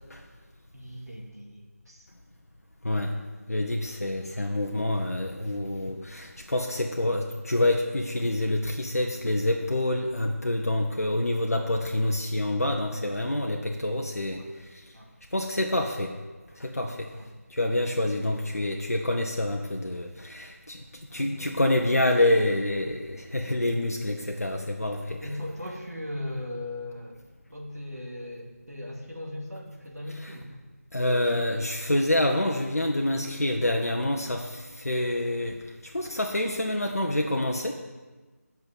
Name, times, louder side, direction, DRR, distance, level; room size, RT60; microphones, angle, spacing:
voice 1, 0.7-2.1 13.0-13.1 13.9-14.5 14.9-15.1 16.7-17.3 21.1-21.5 25.2-27.2 27.5-30.6, left 1 dB, 85° right, -2 dB, 2.3 m, -39 dB
voice 2, 2.8-3.2 3.5-14.4 15.3-16.1 16.6-17.1 17.5-20.8 21.1-25.2 30.2-30.3 30.9-37.7, left 1 dB, 65° left, 1 dB, 1.0 m, -27 dB
7.9 x 6.1 x 7.2 m, 1.3 s
figure-of-eight pair, 165°, 9 cm